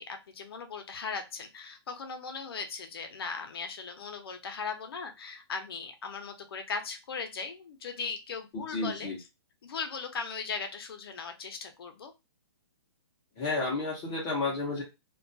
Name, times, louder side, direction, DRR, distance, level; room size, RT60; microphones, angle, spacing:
voice 1, 0.0-9.1 9.6-12.1, left 5 dB, 60° left, 6 dB, 0.6 m, -38 dB
voice 2, 8.5-9.2 13.4-14.8, left 3 dB, 15° left, -3 dB, 0.6 m, -31 dB
2.2 x 2.2 x 2.6 m, 0.24 s
hypercardioid pair, 170°, 14 cm